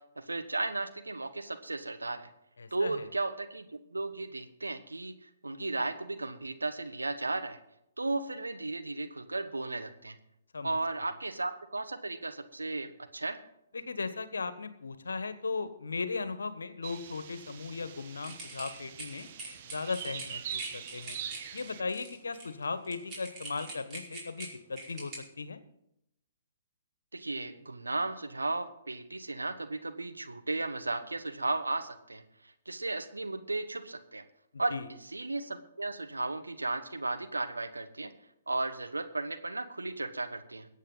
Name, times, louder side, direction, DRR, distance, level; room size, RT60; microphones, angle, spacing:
voice 1, 0.2-2.3 2.7-7.6 8.0-10.2 10.6-13.4 27.1-34.2 34.6-34.7 35.1-38.1 38.5-40.7, right 2 dB, 85° right, 9 dB, 1.3 m, -35 dB
voice 2, 2.6-3.0 10.5-10.8 13.7-19.3 19.6-21.2 21.5-25.6 34.5-34.9, left 4 dB, 75° left, 12 dB, 1.3 m, -37 dB
sound 1, 16.8-21.8, right 9 dB, 45° right, 1.1 m, -43 dB
sound 2, 18.2-25.2, right 2 dB, 25° right, 4.9 m, -44 dB
21.5 x 8.3 x 3.9 m, 0.80 s
figure-of-eight pair, 125°, 0 cm